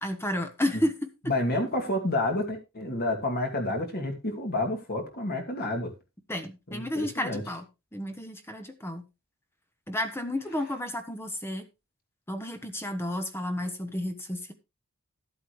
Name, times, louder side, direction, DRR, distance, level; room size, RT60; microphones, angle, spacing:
voice 1, 0.0-1.1 6.3-7.7 7.9-9.1 9.9-11.7 12.3-14.5, left 1 dB, 10° left, 8 dB, 1.1 m, -31 dB
voice 2, 1.3-5.9 6.7-7.4, left 1 dB, 45° left, 3 dB, 2.6 m, -29 dB
13.0 x 8.3 x 3.2 m, 0.26 s
head